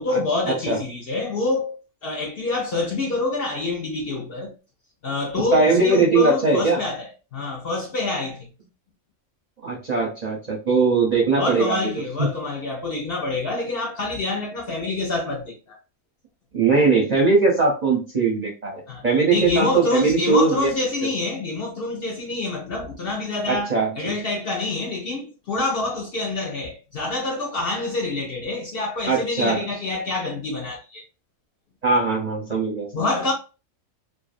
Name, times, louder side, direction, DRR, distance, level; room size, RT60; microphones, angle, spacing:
voice 1, 0.0-4.5 5.0-8.5 11.3-15.8 18.9-31.0 32.9-33.3, left 3 dB, 60° left, 0.7 m, -26 dB
voice 2, 5.5-6.8 9.6-11.9 12.2-12.3 16.5-20.7 23.5-24.1 29.1-29.6 31.8-33.1, right 4 dB, 45° right, 0.6 m, -20 dB
2.5 x 2.3 x 2.4 m
omnidirectional pair, 1.4 m